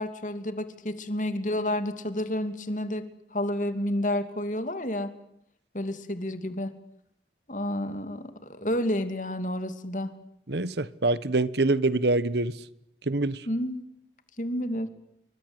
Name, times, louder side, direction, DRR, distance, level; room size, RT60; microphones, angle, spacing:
voice 1, 0.0-3.0 3.3-5.1 5.7-6.7 7.5-10.1 13.5-13.8 14.4-14.9, left 1 dB, 45° left, 2.9 m, -30 dB
voice 2, 10.5-12.5 13.1-13.4, right 2 dB, 75° right, 1.3 m, -25 dB
28.5 x 24.5 x 8.2 m
head